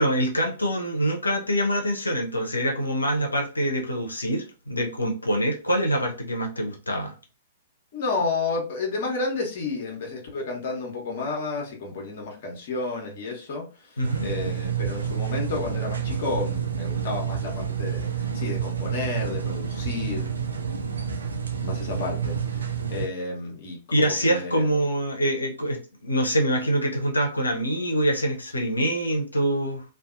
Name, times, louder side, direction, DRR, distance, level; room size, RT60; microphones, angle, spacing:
voice 1, 0.0-7.1 14.0-14.3 23.9-29.8, equal, 80° left, 1 dB, 0.7 m, -25 dB
voice 2, 7.9-20.3 21.6-24.7, left 3 dB, 45° left, 0 dB, 1.0 m, -31 dB
sound 1, 14.0-23.1, right 7 dB, 70° right, 0.4 m, -29 dB
2.6 x 2.4 x 2.4 m, 0.34 s
figure-of-eight pair, 110°, 0 cm